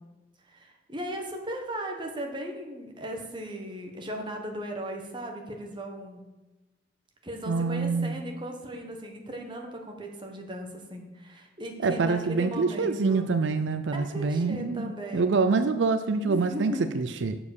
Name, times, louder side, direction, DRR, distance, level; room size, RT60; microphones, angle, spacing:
voice 1, 0.5-6.2 7.2-13.3 13.9-15.4 16.3-16.9, right 1 dB, 25° right, 2 dB, 1.3 m, -37 dB
voice 2, 7.5-8.2 11.8-17.4, right 4 dB, 70° right, 10 dB, 0.5 m, -26 dB
7.3 x 7.2 x 6.5 m, 1.1 s
head